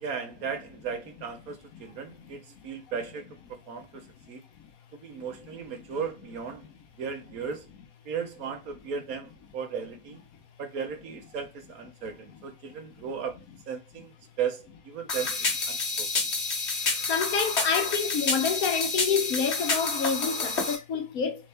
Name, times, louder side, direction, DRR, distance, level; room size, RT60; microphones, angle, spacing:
voice 1, 0.0-4.4 5.0-6.7 7.0-7.7 8.1-10.2 10.6-13.4 13.7-16.1, right 6 dB, 65° right, 1.3 m, -36 dB
sound 1, 15.1-20.8, left 3 dB, 45° left, 1.3 m, -29 dB
voice 2, 17.1-21.4, left 6 dB, 65° left, 1.3 m, -27 dB
4.0 x 3.7 x 3.3 m
omnidirectional pair, 1.7 m